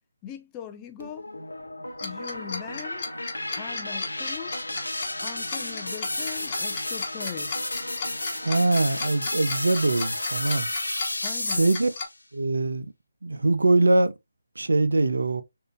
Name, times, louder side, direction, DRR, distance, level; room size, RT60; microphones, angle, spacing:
voice 1, 0.2-1.2 2.0-3.1 3.6-4.5 5.2-7.5 11.2-11.7, left 9 dB, 15° left, 0.5 m, -40 dB
sound 1, 1.0-12.1, left 1 dB, 85° left, 0.7 m, -32 dB
Tick-tock, 2.0-12.0, left 4 dB, 35° left, 1.2 m, -35 dB
voice 2, 8.4-10.7 11.5-11.9 12.3-12.9 13.2-14.1 14.6-15.4, right 2 dB, 75° right, 0.4 m, -22 dB
3.6 x 2.5 x 2.4 m
figure-of-eight pair, 150°, 0 cm